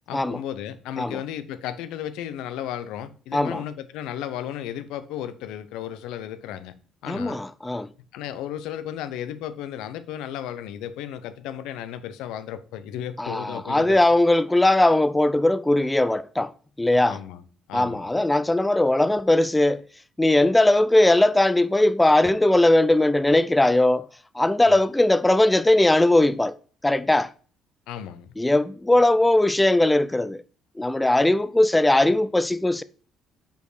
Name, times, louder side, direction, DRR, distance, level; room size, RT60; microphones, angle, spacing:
voice 1, 0.1-6.7 7.0-7.4 8.1-14.0 17.1-17.4 17.7-18.1 24.7-24.8 27.9-28.3, left 10 dB, 85° left, 0.6 m, -34 dB
voice 2, 3.3-3.6 7.1-7.9 13.2-16.5 16.8-17.2 17.7-19.8 20.2-24.1 24.3-26.6 26.8-27.3 28.4-30.4 30.8-32.8, left 1 dB, 10° left, 0.4 m, -19 dB
5.2 x 4.5 x 4.9 m
supercardioid pair, 80°, 0 cm